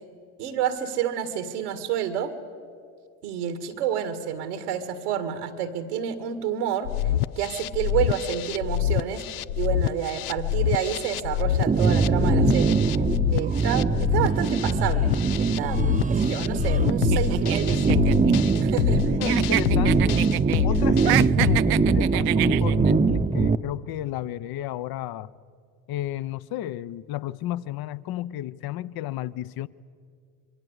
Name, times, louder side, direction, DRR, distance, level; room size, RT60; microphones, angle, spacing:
voice 1, 0.4-2.3 3.2-6.9 7.4-9.2 9.6-12.8 13.3-18.2 18.6-19.0, right 9 dB, 85° right, 2.0 m, -29 dB
sound 1, 6.9-21.6, left 12 dB, 85° left, 0.7 m, -26 dB
sound 2, 11.7-23.6, right 4 dB, 15° right, 0.8 m, -22 dB
sound 3, 17.1-19.0 19.2-20.6 21.0-22.9, right 19 dB, 55° right, 0.6 m, -28 dB
voice 2, 19.2-20.2 20.6-25.3 25.9-29.7, left 13 dB, 55° left, 0.9 m, -32 dB
26.5 x 23.0 x 8.2 m
hypercardioid pair, 75°, 45 cm